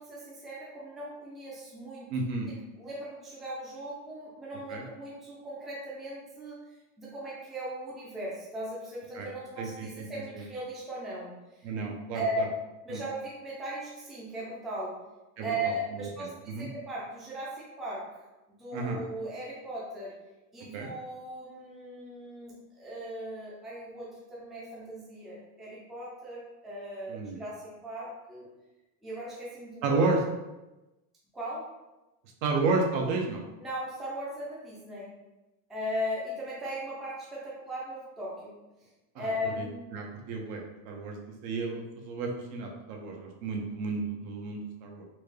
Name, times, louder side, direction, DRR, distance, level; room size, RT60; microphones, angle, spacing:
voice 1, 0.0-2.1 2.5-6.6 7.0-11.7 12.1-12.4 12.8-14.9 15.4-18.2 18.5-20.1 20.5-28.5 29.0-30.0 31.3-31.6 33.6-35.1 35.7-38.5 39.1-39.9, right 1 dB, ahead, -7 dB, 0.4 m, -38 dB
voice 2, 2.1-2.5 4.7-4.8 9.1-9.3 9.6-10.1 10.3-10.4 11.6-12.5 12.9-13.0 15.4-16.7 18.7-19.0 20.7-20.9 27.1-27.4 29.8-30.2 32.4-33.4 39.1-39.3 39.6-39.7 39.9-45.0, right 3 dB, 60° right, 1 dB, 0.8 m, -32 dB
4.2 x 2.2 x 3.2 m, 1.0 s
cardioid pair, 160°, 40 cm